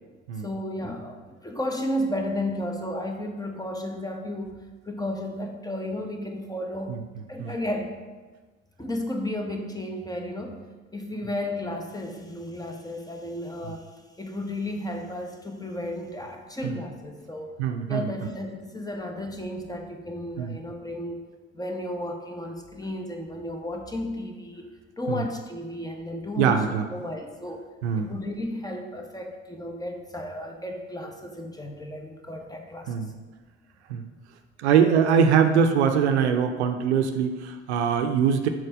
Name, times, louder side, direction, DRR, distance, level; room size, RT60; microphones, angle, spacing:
voice 1, 0.4-4.6 4.9-7.0 7.3-8.0 8.8-10.6 10.9-13.9 14.2-17.5 17.9-21.2 21.5-26.6 26.9-27.7 28.0-33.1, left 1 dB, 10° left, 3 dB, 1.0 m, -33 dB
voice 2, 17.6-18.1 20.4-20.5 25.1-25.3 26.4-26.8 27.8-28.1 32.9-33.1 33.9-34.0 34.6-38.5, right 7 dB, 75° right, 6 dB, 0.6 m, -22 dB
6.5 x 4.4 x 4.9 m, 1.3 s
figure-of-eight pair, 50°, 34 cm